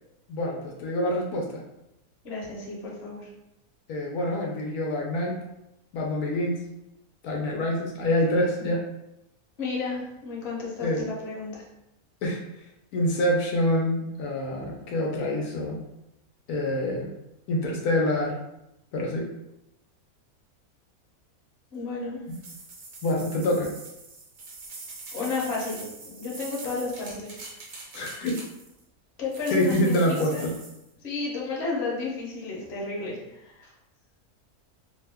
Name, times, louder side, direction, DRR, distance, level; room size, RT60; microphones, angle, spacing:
voice 1, 0.3-1.6 3.9-5.4 5.9-6.6 7.2-8.8 10.8-11.0 12.2-12.4 12.9-15.8 16.5-17.1 17.5-18.4 18.9-19.3 23.0-23.7 27.9-28.3 29.5-30.5, left 1 dB, 80° left, -2 dB, 1.1 m, -26 dB
voice 2, 2.2-3.3 9.6-11.7 21.7-22.2 25.1-27.4 29.2-30.5 31.0-33.7, left 4 dB, 50° left, -4 dB, 1.0 m, -32 dB
sound 1, 22.3-28.8 29.3-30.8, right 3 dB, 60° right, 1.0 m, -43 dB
2.8 x 2.2 x 3.4 m, 0.86 s
omnidirectional pair, 1.6 m